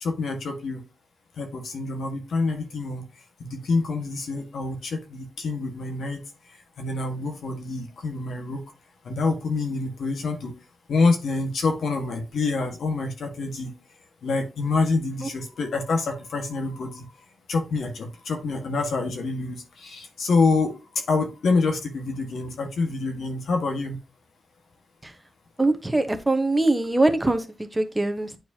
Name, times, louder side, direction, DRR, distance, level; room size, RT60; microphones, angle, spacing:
voice 1, 0.0-0.8 1.4-3.1 3.4-6.2 6.8-8.6 9.0-10.5 10.9-13.7 14.2-17.1 17.5-24.0, left 3 dB, 75° left, 1.6 m, -26 dB
voice 2, 25.6-28.4, right 2 dB, 15° right, 1.1 m, -23 dB
9.2 x 4.6 x 2.8 m
cardioid pair, 80°, 0 cm